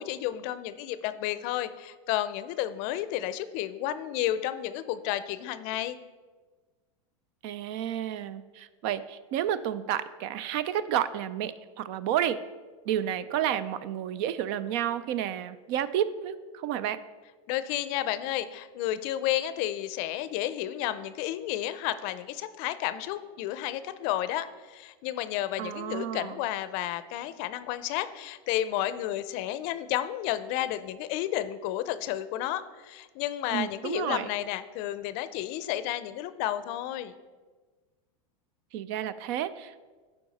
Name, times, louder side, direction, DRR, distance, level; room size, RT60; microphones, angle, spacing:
voice 1, 0.0-6.0 17.5-37.1, left 13 dB, 50° left, 13 dB, 0.5 m, -32 dB
voice 2, 7.4-12.4 12.9-17.0 25.6-26.4 33.5-34.3 38.7-39.9, right 10 dB, 55° right, 15 dB, 0.5 m, -31 dB
11.5 x 4.7 x 4.1 m, 1.4 s
supercardioid pair, 130°, 17 cm